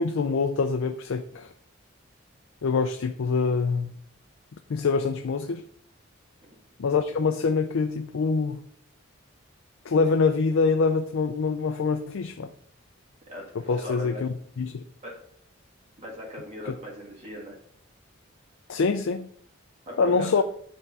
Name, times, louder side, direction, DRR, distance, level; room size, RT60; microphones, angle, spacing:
voice 1, 0.0-1.5 2.6-3.9 4.7-5.6 6.8-8.6 9.9-12.5 13.6-14.8 18.7-19.3 20.0-20.4, left 4 dB, 80° left, 0.4 m, -25 dB
voice 2, 13.3-14.2 15.0-15.2 16.0-17.6 19.9-20.4, equal, 30° right, 1.7 m, -39 dB
8.1 x 3.6 x 5.4 m
head